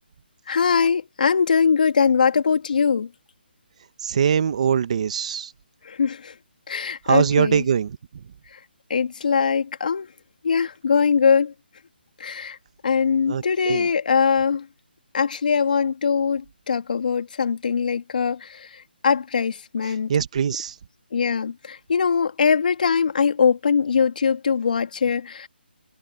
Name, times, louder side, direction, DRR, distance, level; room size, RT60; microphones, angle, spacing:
voice 1, 0.5-3.1 5.8-6.3 6.7-7.6 8.9-10.1 10.4-11.5 12.2-12.6 12.8-14.7 15.1-20.1 21.1-25.5, left 6 dB, 50° left, 3.0 m, -22 dB
voice 2, 4.0-5.5 7.0-8.0 13.3-13.9 19.9-20.7, right 7 dB, 40° right, 1.4 m, -22 dB
hypercardioid pair, 170°, 6 cm